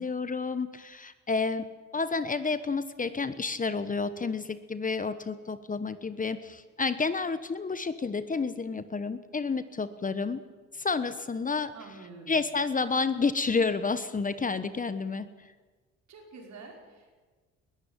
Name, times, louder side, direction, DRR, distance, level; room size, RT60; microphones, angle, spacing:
voice 1, 0.0-1.7 1.9-10.4 10.7-11.7 12.3-15.3, left 4 dB, 25° left, 13 dB, 1.1 m, -30 dB
voice 2, 11.7-12.4 16.1-17.1, right 4 dB, 65° right, 1 dB, 5.4 m, -47 dB
20.5 x 14.5 x 9.0 m, 1.4 s
cardioid pair, 90°, 30 cm